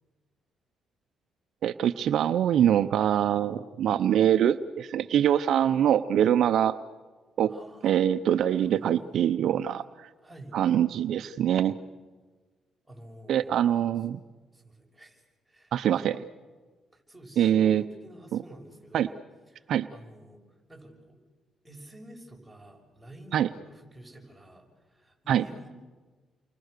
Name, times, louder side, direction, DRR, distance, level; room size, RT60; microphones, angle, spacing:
voice 1, 1.6-6.8 7.4-7.5 7.8-10.1 10.5-11.8 13.3-14.2 15.7-16.2 17.4-17.8 18.3-18.4 18.9-19.1 19.7-19.9 23.3-23.5 25.3-25.4, right 10 dB, 70° right, 11 dB, 0.7 m, -24 dB
voice 2, 7.5-7.9 8.5-9.2 10.2-10.5 12.8-13.6 14.5-15.7 16.9-19.1 19.5-20.4 20.7-21.2 21.6-25.7, right 1 dB, 5° right, 0 dB, 6.7 m, -50 dB
29.5 x 24.5 x 6.7 m, 1.3 s
cardioid pair, 90°, 0 cm